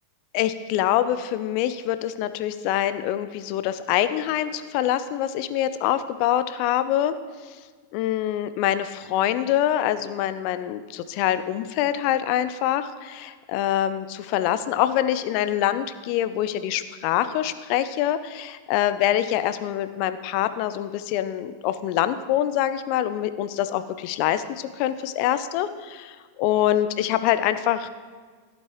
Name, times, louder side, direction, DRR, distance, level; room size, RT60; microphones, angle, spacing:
voice 1, 0.3-7.1 7.9-27.9, left 12 dB, 45° left, 12 dB, 0.5 m, -25 dB
14.5 x 8.3 x 3.1 m, 1.6 s
figure-of-eight pair, 90°, 0 cm